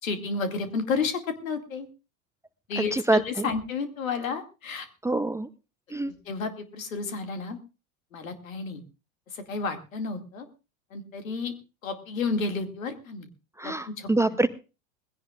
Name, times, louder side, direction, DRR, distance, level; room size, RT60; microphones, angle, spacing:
voice 1, 0.0-1.9 2.7-4.9 6.1-7.6 8.1-8.8 9.3-10.5 10.9-11.5 11.8-13.3 13.6-14.1, left 4 dB, 75° left, 7 dB, 2.4 m, -31 dB
voice 2, 2.8-3.5 5.0-5.5 5.9-6.1 13.6-14.5, right 2 dB, 5° right, 12 dB, 0.6 m, -25 dB
20.5 x 16.5 x 2.5 m, 0.32 s
figure-of-eight pair, 80°, 41 cm